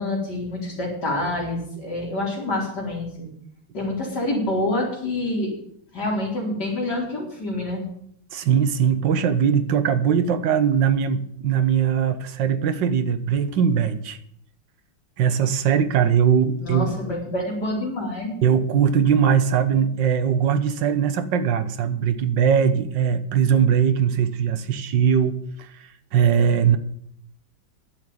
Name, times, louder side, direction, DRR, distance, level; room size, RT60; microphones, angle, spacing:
voice 1, 0.0-3.3 3.7-5.5 5.9-7.8 16.6-18.4, left 1 dB, 55° left, -2 dB, 4.9 m, -27 dB
voice 2, 8.3-14.2 15.2-17.0 18.4-26.8, right 7 dB, 65° right, 10 dB, 1.7 m, -20 dB
11.0 x 7.4 x 9.6 m, 0.69 s
omnidirectional pair, 2.2 m